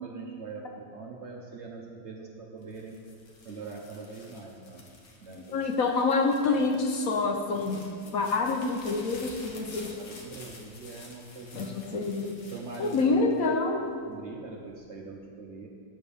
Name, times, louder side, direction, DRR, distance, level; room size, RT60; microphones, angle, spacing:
voice 1, 0.0-3.0 3.4-4.9 5.2-6.0 8.2-8.3 9.8-13.0 13.5-13.6 14.1-15.7, right 4 dB, 60° right, 0 dB, 0.8 m, -43 dB
sound 1, 2.6-14.0 14.5-15.1, left 2 dB, 85° left, 1.8 m, -50 dB
voice 2, 5.3-7.8 8.1-9.9 11.5-12.3 12.8-13.8, left 3 dB, 60° left, 3 dB, 1.0 m, -27 dB
8.9 x 6.7 x 5.3 m, 2.3 s
omnidirectional pair, 1.8 m